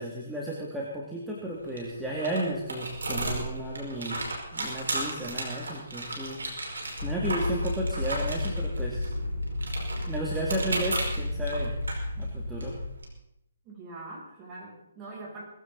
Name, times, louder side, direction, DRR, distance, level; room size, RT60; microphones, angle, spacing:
voice 1, 0.0-4.2 4.5-6.6 7.0-9.1 10.1-11.8 12.2-12.8, right 1 dB, 5° right, -5 dB, 2.6 m, -33 dB
sound 1, 1.4-13.1, right 2 dB, 75° right, 5.2 m, -36 dB
sound 2, 7.0-12.9, left 2 dB, 70° left, 2.3 m, -32 dB
voice 2, 13.6-15.4, right 2 dB, 25° right, -4 dB, 7.6 m, -43 dB
20.0 x 15.5 x 4.1 m, 0.80 s
figure-of-eight pair, 140°, 0 cm